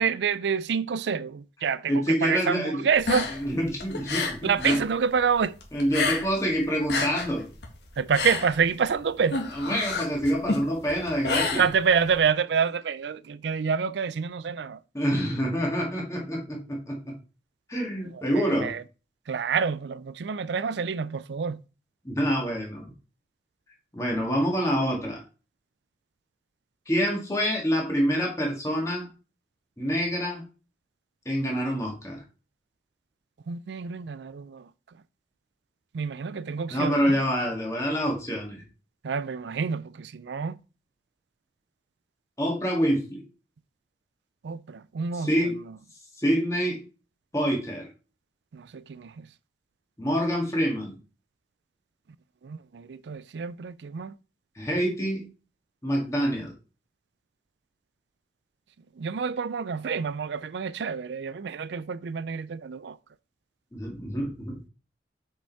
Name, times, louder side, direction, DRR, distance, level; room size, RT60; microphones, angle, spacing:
voice 1, 0.0-3.3 4.4-5.6 8.0-9.4 11.5-14.8 18.1-18.8 19.3-21.6 33.5-34.7 35.9-37.2 39.0-40.6 44.4-45.3 48.5-49.3 52.4-54.1 59.0-63.0, right 6 dB, 80° right, 0.4 m, -27 dB
voice 2, 1.9-2.8 3.4-4.8 5.7-7.5 9.5-11.6 14.9-17.2 17.7-18.7 22.0-22.9 23.9-25.2 26.9-29.1 29.8-30.4 31.3-32.2 36.7-38.6 42.4-43.2 45.1-45.6 46.2-46.8 47.3-47.9 50.0-51.0 54.6-55.3 55.8-56.5 63.7-64.7, equal, 15° left, 1.9 m, -26 dB
sound 1, 2.9-4.9 5.2-6.5 6.8-12.2, left 3 dB, 80° left, 1.8 m, -30 dB
6.8 x 5.1 x 4.5 m
head